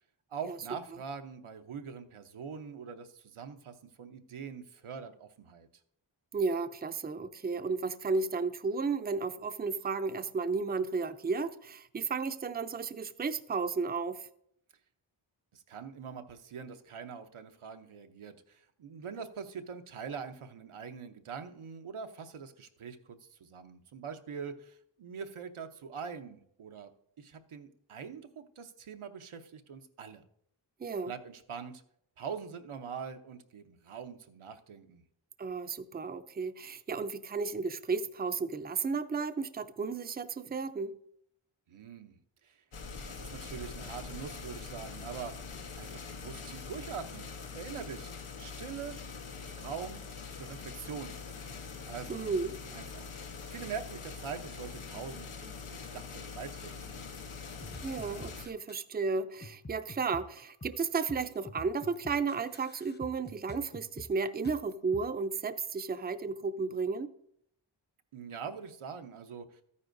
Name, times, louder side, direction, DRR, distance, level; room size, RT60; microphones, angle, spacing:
voice 1, 0.3-5.7 15.5-26.9 27.2-30.2 31.1-31.8 32.2-35.0 41.7-42.6 43.1-45.4 45.8-48.1 48.4-49.0 49.5-50.0 50.4-51.1 51.8-52.2 52.7-57.1 68.1-69.6, right 6 dB, 85° right, 0.8 m, -43 dB
voice 2, 6.3-14.3 30.8-31.1 35.4-41.0 52.1-52.6 57.8-67.1, right 4 dB, 20° right, 0.4 m, -33 dB
sound 1, 42.7-58.5, left 5 dB, 85° left, 1.0 m, -44 dB
sound 2, 57.6-58.8 59.4-65.0, left 1 dB, 20° left, 0.7 m, -47 dB
13.0 x 9.6 x 2.6 m
wide cardioid pair, 60°, 48 cm